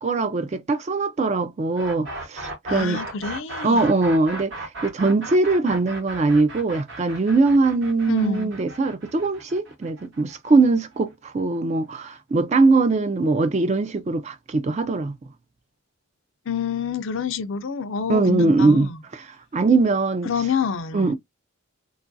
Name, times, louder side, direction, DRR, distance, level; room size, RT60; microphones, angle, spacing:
voice 1, 0.0-3.0 3.6-15.2 18.1-19.2 19.5-20.3 20.9-21.1, right 3 dB, 30° right, 0.3 m, -21 dB
sound 1, 1.8-11.6, right 2 dB, 55° right, 0.9 m, -36 dB
voice 2, 2.7-4.0 8.1-8.5 16.5-19.0 20.2-21.1, left 6 dB, 60° left, 0.4 m, -27 dB
3.0 x 2.3 x 2.6 m
head